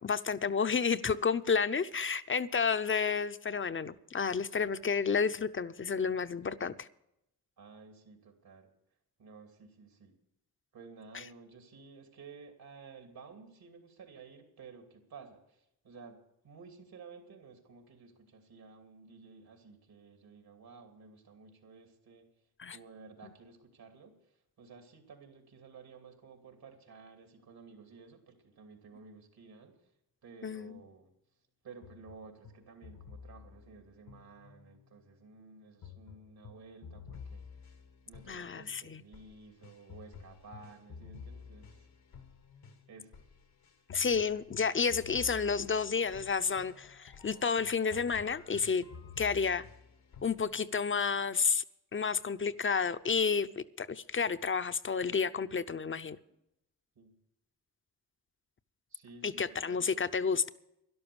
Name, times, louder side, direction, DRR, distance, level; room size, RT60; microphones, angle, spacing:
voice 1, 0.0-6.9 22.6-22.8 30.4-30.8 38.3-39.0 43.9-48.8 49.2-49.6 50.2-51.6 51.9-56.2 59.2-60.5, left 5 dB, 35° left, 0.7 m, -31 dB
voice 2, 7.6-8.7 9.2-10.1 10.7-22.3 22.7-29.8 30.2-31.1 31.6-37.8 38.1-41.9 42.9-43.2 44.5-44.8 57.0-57.2 58.9-59.8, right 4 dB, 75° right, 2.8 m, -54 dB
sound 1, 31.8-34.9 35.8-50.5, left 6 dB, 80° left, 1.4 m, -51 dB
12.5 x 11.5 x 7.0 m
cardioid pair, 65°, 37 cm